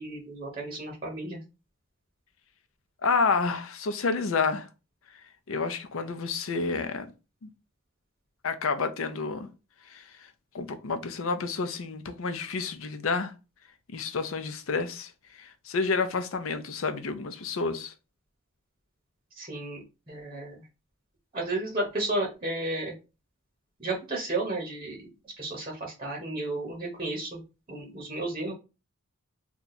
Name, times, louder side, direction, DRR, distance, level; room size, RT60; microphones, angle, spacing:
voice 1, 0.0-1.4 19.3-20.6 21.3-22.9 23.8-25.1 25.4-27.4 27.7-28.5, right 2 dB, 25° right, 0.9 m, -33 dB
voice 2, 3.0-4.7 5.5-7.1 7.4-7.5 8.4-9.5 9.9-10.0 10.5-13.3 13.9-17.9, left 4 dB, 75° left, 0.5 m, -29 dB
2.8 x 2.3 x 3.9 m
head